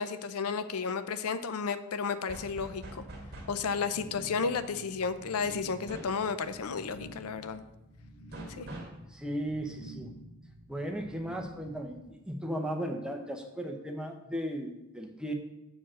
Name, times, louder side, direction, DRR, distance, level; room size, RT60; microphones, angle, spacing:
voice 1, 0.0-3.0 3.5-7.6 8.6-8.7, left 5 dB, 85° left, 12 dB, 0.5 m, -32 dB
sound 1, 2.3-3.7 5.9-6.2 8.3-9.0, right 1 dB, 45° right, 1.5 m, -44 dB
sound 2, 3.4-12.0, right 1 dB, 50° left, 2.2 m, -49 dB
voice 2, 9.1-10.1 10.7-15.3, equal, 5° right, 3 dB, 0.7 m, -36 dB
7.4 x 4.7 x 6.3 m, 0.95 s
head